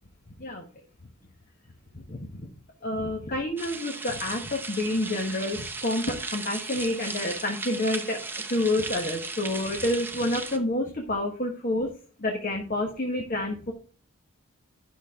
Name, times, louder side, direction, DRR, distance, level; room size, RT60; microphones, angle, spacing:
voice 1, 2.1-2.4 2.8-8.2 8.5-11.9 12.2-13.7, left 1 dB, 40° left, 1 dB, 1.3 m, -28 dB
sound 1, 3.6-10.6, right 3 dB, 10° right, 0.8 m, -36 dB
11.0 x 6.3 x 3.7 m, 0.39 s
head